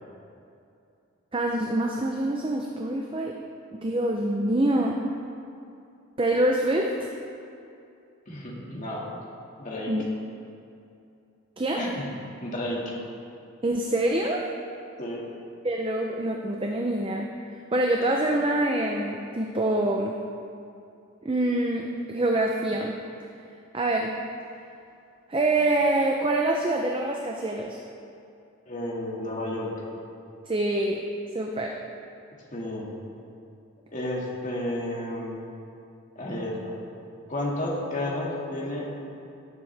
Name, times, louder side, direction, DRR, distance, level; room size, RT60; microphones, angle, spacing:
voice 1, 1.3-3.4 3.7-5.0 6.2-7.1 9.9-10.0 11.6-11.8 13.6-14.4 15.6-17.3 17.7-20.2 21.2-23.0 23.7-24.2 25.3-27.8 30.5-31.0 31.3-31.8, right 1 dB, 25° right, 1 dB, 0.5 m, -25 dB
voice 2, 8.3-9.0 9.6-9.9 11.8-12.0 12.4-12.9 15.0-15.2 28.7-29.7 32.5-32.9 33.9-35.4 36.2-36.8 37.3-38.9, left 1 dB, 35° left, -4 dB, 1.9 m, -31 dB
17.0 x 7.4 x 3.4 m, 2.6 s
head